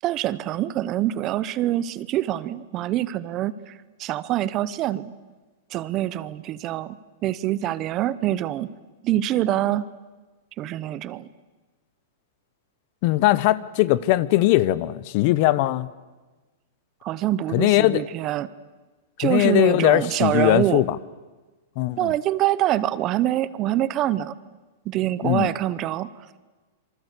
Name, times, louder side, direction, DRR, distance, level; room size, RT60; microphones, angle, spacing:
voice 1, 0.0-3.7 4.0-5.1 5.7-7.0 7.2-8.7 9.0-9.9 10.6-11.3 17.0-18.5 19.2-20.8 22.0-24.3 24.8-26.1, right 13 dB, 25° right, 17 dB, 0.8 m, -25 dB
voice 2, 13.0-15.9 17.5-18.0 19.2-21.0 21.8-22.1 25.2-25.5, left 16 dB, 40° left, 19 dB, 0.9 m, -20 dB
27.0 x 24.5 x 8.3 m, 1.2 s
supercardioid pair, 165°, 0 cm